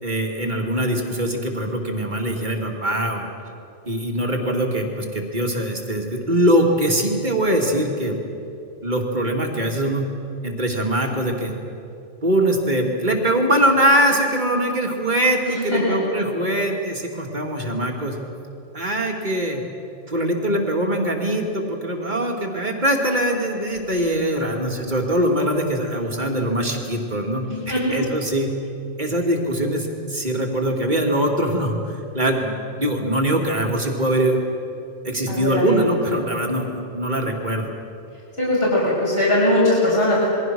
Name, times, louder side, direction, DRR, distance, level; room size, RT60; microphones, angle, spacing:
voice 1, 0.0-3.3 3.8-8.2 8.8-10.0 10.4-11.5 12.2-18.2 18.7-19.6 20.1-28.5 29.0-34.4 35.0-37.7, right 1 dB, 35° right, 1 dB, 2.8 m, -22 dB
voice 2, 15.4-16.0 27.5-28.0 35.3-35.7 38.4-40.3, left 1 dB, 45° left, -6 dB, 6.4 m, -20 dB
27.5 x 22.0 x 6.3 m, 2.7 s
omnidirectional pair, 1.4 m